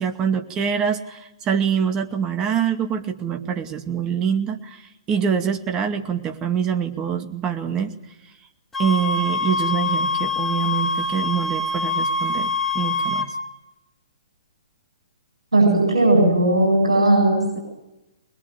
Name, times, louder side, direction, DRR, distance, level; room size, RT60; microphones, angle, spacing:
voice 1, 0.0-4.8 5.1-7.9 8.8-13.4, right 7 dB, 25° right, 7 dB, 2.2 m, -25 dB
sound 1, 8.7-13.3, left 3 dB, 10° left, 4.2 m, -24 dB
voice 2, 15.5-17.6, right 1 dB, 80° right, 2 dB, 7.8 m, -17 dB
22.5 x 21.5 x 9.1 m, 0.96 s
figure-of-eight pair, 120°, 3 cm